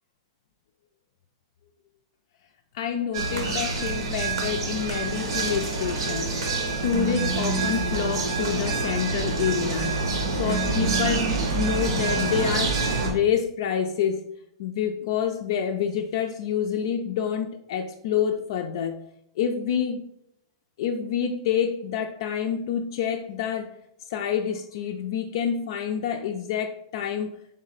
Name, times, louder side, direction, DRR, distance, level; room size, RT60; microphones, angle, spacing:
voice 1, 2.7-10.0 10.3-14.3 14.6-19.0 19.4-20.0 20.8-23.7 24.1-27.3, left 8 dB, 60° left, 0.4 m, -28 dB
sound 1, 3.1-13.1, right 3 dB, 80° right, 1.0 m, -26 dB
3.6 x 3.1 x 3.9 m
hypercardioid pair, 145°, 3 cm